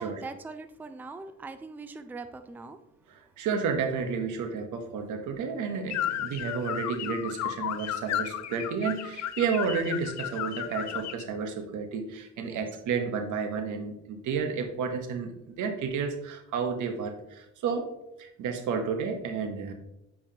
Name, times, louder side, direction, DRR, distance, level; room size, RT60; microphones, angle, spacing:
voice 1, 0.0-2.8 12.4-12.6, right 3 dB, 5° right, 9 dB, 0.4 m, -41 dB
voice 2, 3.1-17.9 18.2-19.7, right 5 dB, 80° right, 6 dB, 1.0 m, -31 dB
sound 1, 5.9-11.2, left 11 dB, 65° left, 0.5 m, -33 dB
8.6 x 4.7 x 2.8 m, 0.85 s
cardioid pair, 90°, 30 cm